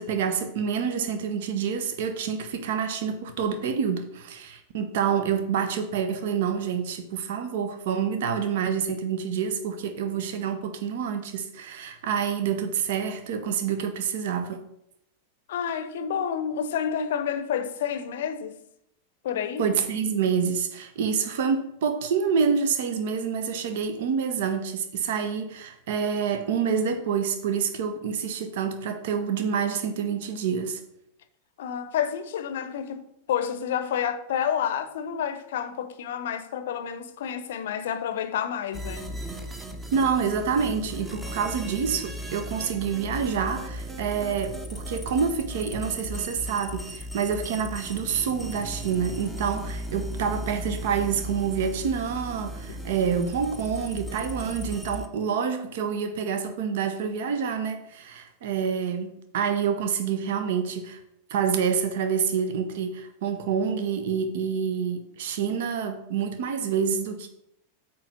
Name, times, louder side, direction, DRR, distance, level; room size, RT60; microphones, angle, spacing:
voice 1, 0.0-14.6 19.6-30.8 39.9-61.0 61.3-67.3, right 6 dB, 55° right, 0.7 m, -27 dB
voice 2, 15.5-18.6 19.2-19.6 31.6-39.1 52.7-52.8, left 8 dB, 55° left, 0.6 m, -29 dB
sound 1, 38.7-55.1, equal, 10° right, 0.9 m, -36 dB
8.5 x 3.1 x 5.9 m
figure-of-eight pair, 90°, 0 cm